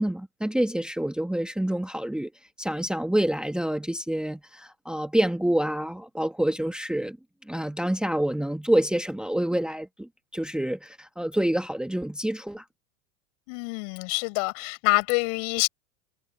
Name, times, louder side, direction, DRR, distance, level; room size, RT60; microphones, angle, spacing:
voice 1, 0.0-2.3 2.6-7.2 7.5-12.6, right 1 dB, ahead, 1.5 m, -27 dB
voice 2, 13.5-15.7, left 38 dB, 60° left, 6.7 m, -26 dB
supercardioid pair, 125°, 40 cm